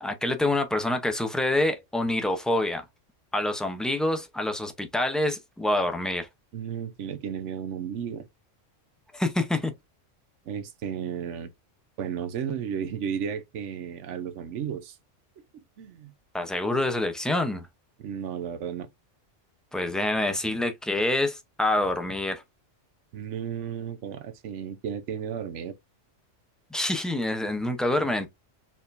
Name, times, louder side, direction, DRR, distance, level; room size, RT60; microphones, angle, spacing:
voice 1, 0.0-2.8 3.3-6.3 9.1-9.7 16.3-17.7 19.7-22.4 26.7-28.3, left 1 dB, ahead, 0.4 m, -26 dB
voice 2, 6.5-8.3 10.5-11.5 12.0-15.0 15.5-16.1 18.0-18.9 23.1-25.7, right 8 dB, 75° right, 1.1 m, -33 dB
4.5 x 3.6 x 2.5 m
omnidirectional pair, 1.3 m